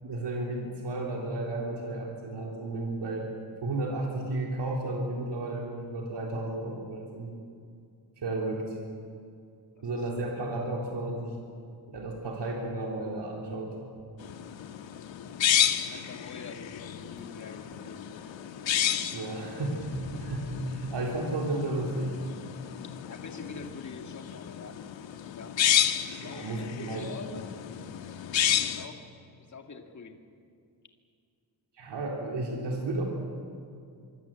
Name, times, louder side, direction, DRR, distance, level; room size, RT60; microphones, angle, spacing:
voice 1, 0.0-3.3 3.6-7.3 8.2-8.8 9.8-11.4 11.9-13.8 19.1-22.2 26.2-27.1 31.7-33.0, right 2 dB, 65° right, -1 dB, 3.7 m, -33 dB
sound 1, 14.2-28.9, left 10 dB, 85° left, 1.5 m, -31 dB
voice 2, 15.9-18.5 23.1-24.8 25.4-25.5 26.2-27.5 28.6-29.0 29.4-30.2, left 4 dB, 40° left, 4 dB, 2.1 m, -45 dB
25.0 x 24.5 x 7.6 m, 2.4 s
wide cardioid pair, 140°, 44 cm